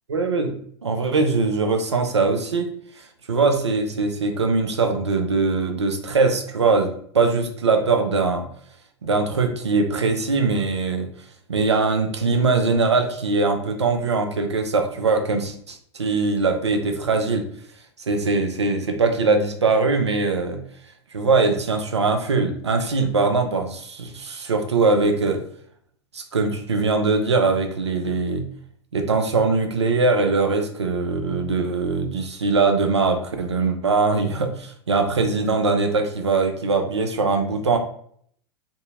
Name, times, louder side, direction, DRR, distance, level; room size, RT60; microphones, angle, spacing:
voice 1, 0.1-2.7 3.0-8.5 9.0-11.1 11.5-17.5 18.1-20.6 21.1-25.4 26.1-28.5 28.9-37.8, right 4 dB, 85° right, 5 dB, 0.4 m, -21 dB
2.7 x 2.6 x 2.3 m, 0.62 s
figure-of-eight pair, 90°, 14 cm